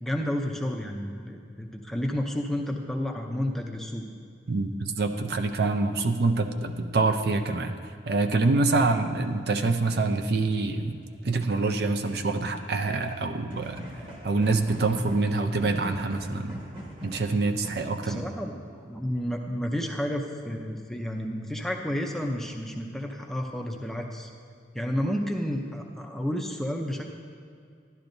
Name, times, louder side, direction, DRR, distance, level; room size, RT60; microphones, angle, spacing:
voice 1, 0.0-4.1 18.0-24.3 24.7-27.1, equal, ahead, 2 dB, 0.5 m, -31 dB
voice 2, 4.5-7.8 8.1-11.0 11.3-13.8 14.2-16.6 17.0-18.2, right 3 dB, 55° right, 6 dB, 0.5 m, -26 dB
sound 1, 10.0-17.7, right 1 dB, 25° right, 1.4 m, -43 dB
12.0 x 11.0 x 2.6 m, 2.3 s
head